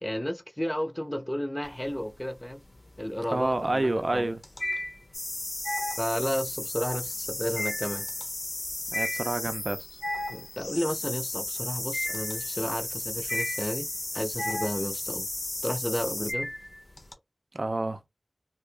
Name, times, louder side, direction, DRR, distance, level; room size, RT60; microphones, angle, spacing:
voice 1, 0.0-2.6 3.0-4.3 6.0-8.1 10.3-13.9 14.1-15.3 15.6-16.5, equal, 15° left, 0.6 m, -32 dB
sound 1, 1.6-2.3 2.6-17.1, left 1 dB, 50° left, 0.8 m, -35 dB
voice 2, 3.3-4.4 8.9-9.8 17.5-18.0, right 2 dB, 55° right, 0.5 m, -28 dB
sound 2, 5.1-16.3, left 2 dB, 75° left, 1.1 m, -35 dB
2.8 x 2.5 x 3.3 m
wide cardioid pair, 55°, 0 cm